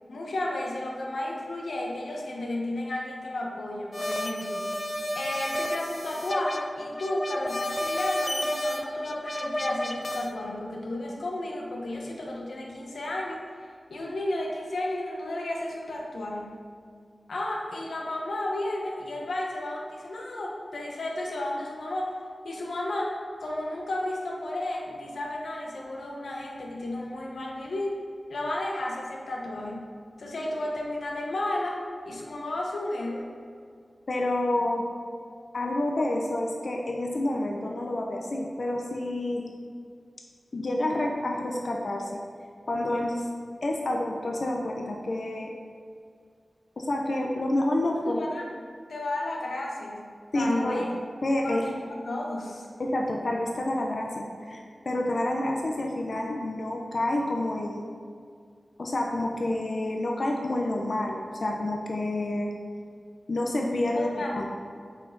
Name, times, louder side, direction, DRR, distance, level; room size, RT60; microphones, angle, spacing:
voice 1, 0.1-4.7 5.1-13.4 13.9-16.5 17.3-22.1 22.4-27.9 28.3-29.8 30.2-33.3 48.0-48.5 48.9-50.9 51.4-52.7 63.9-64.4, left 1 dB, 90° left, -1 dB, 1.1 m, -33 dB
sound 1, 3.9-10.3, equal, 15° left, 0.6 m, -31 dB
voice 2, 34.1-34.8 35.5-39.4 40.5-42.2 42.7-43.3 43.6-45.5 46.8-48.2 50.3-50.9 51.2-51.6 52.8-57.9 58.8-62.5 63.3-64.4, left 1 dB, 65° left, 0 dB, 0.7 m, -28 dB
7.9 x 4.7 x 3.9 m, 2.2 s
wide cardioid pair, 65°, 0 cm